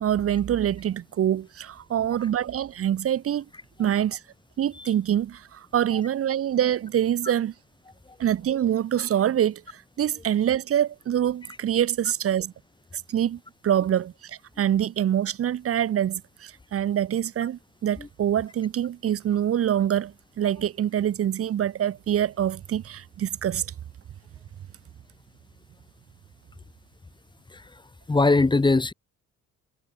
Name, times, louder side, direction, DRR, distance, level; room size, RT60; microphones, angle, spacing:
voice 1, 0.0-3.4 3.8-4.2 4.6-7.5 8.2-12.5 12.9-23.7, right 10 dB, 45° right, 1.0 m, -25 dB
voice 2, 28.1-28.9, left 3 dB, 15° left, 2.0 m, -20 dB
cardioid pair, 140°, 32 cm